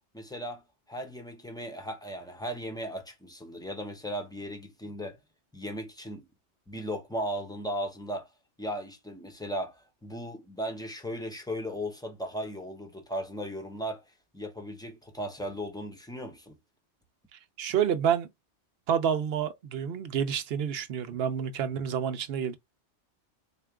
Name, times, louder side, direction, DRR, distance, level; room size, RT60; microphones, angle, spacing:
voice 1, 0.1-5.2 5.5-6.3 6.7-8.3 8.6-14.0 14.3-16.5, equal, 5° left, 0.6 m, -36 dB
voice 2, 17.3-18.3 18.9-22.6, right 8 dB, 65° right, 0.8 m, -29 dB
4.3 x 2.3 x 3.4 m
omnidirectional pair, 1.2 m